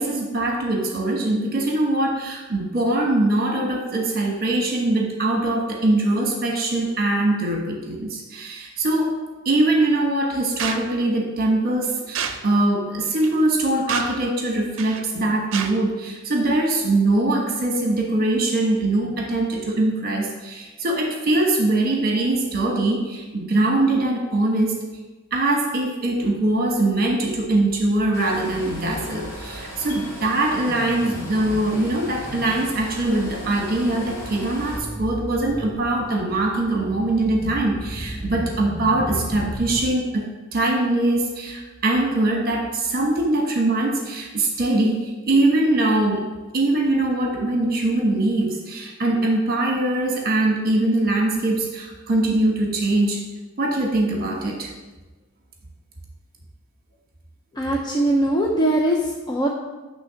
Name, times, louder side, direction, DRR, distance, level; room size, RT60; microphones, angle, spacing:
voice 1, 0.0-9.2 9.4-24.8 25.3-46.3 46.5-53.2 53.6-54.7 57.8-58.0, right 2 dB, 45° right, 0 dB, 1.2 m, -22 dB
sound 1, 10.6-10.8 12.2-12.4 13.2-13.3 13.9-14.2 14.8-15.1 15.5-15.7, right 7 dB, 60° right, 0.6 m, -28 dB
sound 2, 26.8-39.9, right 1 dB, 15° right, 0.9 m, -36 dB
sound 3, 28.1-34.8, equal, 75° left, 2.0 m, -38 dB
voice 2, 57.5-59.5, right 1 dB, 20° left, -1 dB, 0.5 m, -21 dB
9.5 x 3.3 x 5.7 m, 1.2 s
head